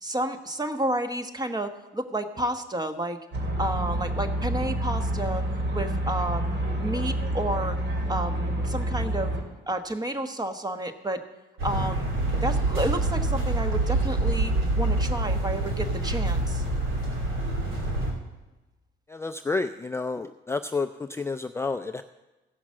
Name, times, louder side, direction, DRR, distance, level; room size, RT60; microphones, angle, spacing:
voice 1, 0.0-3.2 3.6-5.4 5.7-7.8 8.1-9.3 9.7-11.2 11.6-12.1 12.4-16.6, right 1 dB, 20° right, 8 dB, 1.2 m, -31 dB
sound 1, 3.3-9.4, right 1 dB, 65° right, 2.6 m, -28 dB
sound 2, 11.6-18.1, right 2 dB, 85° right, 2.8 m, -26 dB
voice 2, 19.1-22.0, left 3 dB, 15° left, 8 dB, 0.4 m, -30 dB
15.5 x 5.9 x 7.5 m, 1.1 s
cardioid pair, 90°, 20 cm